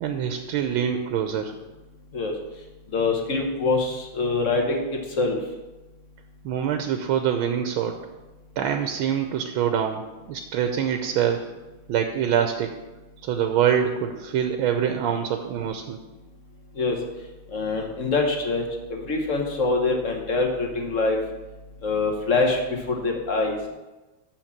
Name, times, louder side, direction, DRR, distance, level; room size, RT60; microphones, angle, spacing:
voice 1, 0.0-1.5 6.4-8.0 8.6-10.0 10.3-11.5 11.9-12.7 13.2-16.0, right 8 dB, 80° right, 6 dB, 1.4 m, -25 dB
voice 2, 2.9-5.4 16.8-17.0 17.5-18.6 18.9-21.2 21.8-23.6, left 3 dB, 45° left, 2 dB, 1.4 m, -24 dB
6.7 x 5.9 x 7.1 m, 1.1 s
omnidirectional pair, 2.3 m